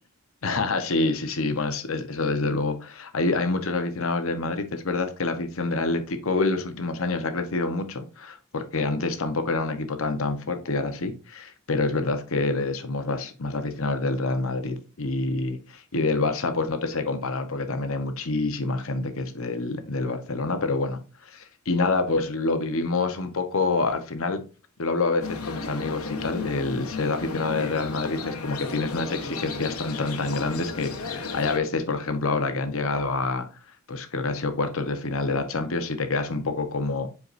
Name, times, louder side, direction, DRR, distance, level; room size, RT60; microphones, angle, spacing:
voice 1, 0.4-24.4 24.8-33.5 33.9-37.1, left 3 dB, 65° left, 1.0 m, -27 dB
sound 1, 25.2-31.6, left 4 dB, 85° left, 1.2 m, -34 dB
7.7 x 4.7 x 2.6 m
head